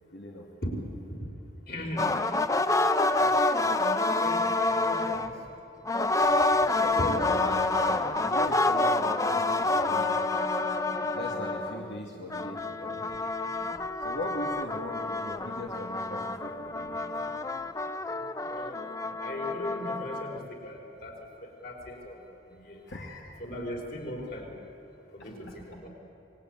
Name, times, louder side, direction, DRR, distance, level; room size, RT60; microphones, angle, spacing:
voice 1, 0.1-0.5 6.7-10.2 11.1-13.1 14.0-17.0 22.9-23.4 25.2-25.3, left 1 dB, 85° left, -2 dB, 2.6 m, -39 dB
voice 2, 1.7-2.2 4.0-4.4 4.8-5.3 7.0-7.1 18.5-18.8 19.2-21.1 21.4-22.2 22.5-22.8 23.4-24.5 25.1-25.9, left 1 dB, 55° left, 0 dB, 4.6 m, -38 dB
sound 1, 2.0-5.4 5.8-12.0 12.3-20.4, left 2 dB, 20° left, 0.7 m, -28 dB
27.5 x 20.0 x 9.0 m, 3.0 s
head